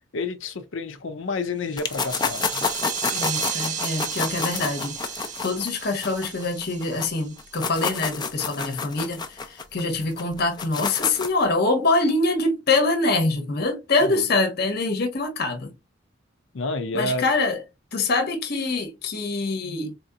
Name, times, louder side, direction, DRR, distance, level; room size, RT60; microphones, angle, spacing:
voice 1, 0.1-2.7 14.0-14.3 16.5-17.3, left 3 dB, 80° left, 0.6 m, -29 dB
sound 1, 1.7-7.7, right 9 dB, 40° right, 0.6 m, -34 dB
sound 2, 1.8-7.1 7.4-11.4, left 5 dB, 20° left, 0.5 m, -29 dB
voice 2, 3.1-15.7 16.9-17.6 17.9-20.0, left 3 dB, 55° left, 0.9 m, -24 dB
4.2 x 2.8 x 2.4 m
head